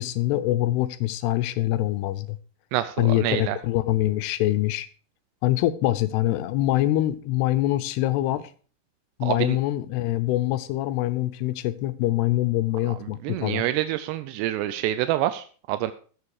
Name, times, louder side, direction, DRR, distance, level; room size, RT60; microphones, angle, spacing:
voice 1, 0.0-2.4 3.0-4.9 5.4-8.5 9.2-13.6, left 15 dB, 85° left, 2.8 m, -24 dB
voice 2, 2.7-3.6 9.2-9.6 13.2-15.9, right 14 dB, 90° right, 2.8 m, -27 dB
14.5 x 7.5 x 4.8 m
omnidirectional pair, 4.7 m